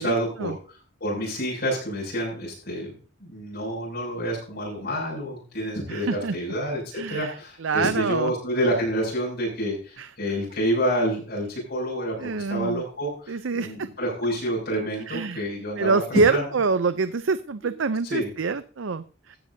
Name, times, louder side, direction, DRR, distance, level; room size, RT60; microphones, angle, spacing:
voice 1, 0.0-16.5 17.6-17.7 18.1-18.3, equal, 55° left, -4 dB, 7.0 m, -28 dB
voice 2, 5.9-6.4 6.9-7.3 7.6-8.3 10.0-10.1 12.2-12.8 13.3-13.9 15.1-15.5 15.8-19.4, right 4 dB, 70° right, 13 dB, 0.6 m, -26 dB
16.0 x 12.5 x 2.8 m, 0.38 s
head